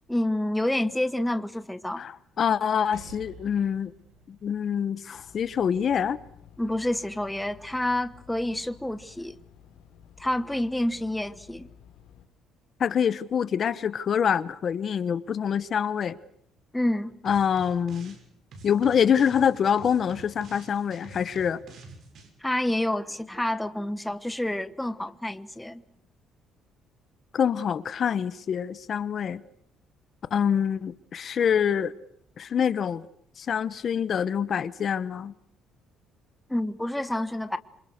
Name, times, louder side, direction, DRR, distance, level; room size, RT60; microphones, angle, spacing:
voice 1, 0.1-2.1 6.6-9.4 10.2-11.7 16.7-17.1 22.4-25.8 36.5-37.6, left 1 dB, 5° left, 1.1 m, -28 dB
voice 2, 2.0-3.9 4.3-6.2 12.8-16.2 17.2-18.1 18.6-21.6 27.3-29.4 30.3-31.9 32.4-33.0 33.4-35.3, left 8 dB, 40° left, 1.1 m, -25 dB
Percussion, 2.9-7.7, right 3 dB, 85° right, 7.4 m, -54 dB
sound 1, 5.1-12.3, left 9 dB, 85° left, 4.5 m, -53 dB
sound 2, 17.3-18.2 18.5-22.3, right 3 dB, 50° right, 6.7 m, -47 dB
27.5 x 26.0 x 6.5 m
cardioid pair, 155°, 0 cm